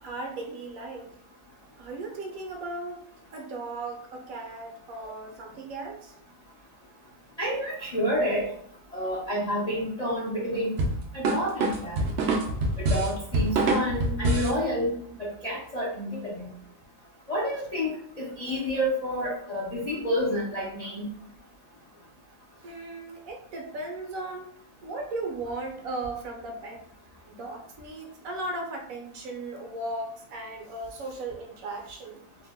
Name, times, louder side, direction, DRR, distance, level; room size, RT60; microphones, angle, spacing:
voice 1, 0.0-1.1 1.8-3.0 3.3-6.1 22.6-24.5 24.8-26.8 27.3-32.2, right 2 dB, 70° right, 2 dB, 0.9 m, -36 dB
voice 2, 7.4-8.5 8.9-10.7 11.1-12.0 12.8-14.9 15.2-16.4 17.3-17.9 18.2-21.1, equal, 60° left, -7 dB, 0.4 m, -29 dB
sound 1, 10.8-14.6, right 2 dB, 90° right, 0.5 m, -25 dB
2.7 x 2.1 x 3.4 m, 0.63 s
omnidirectional pair, 1.7 m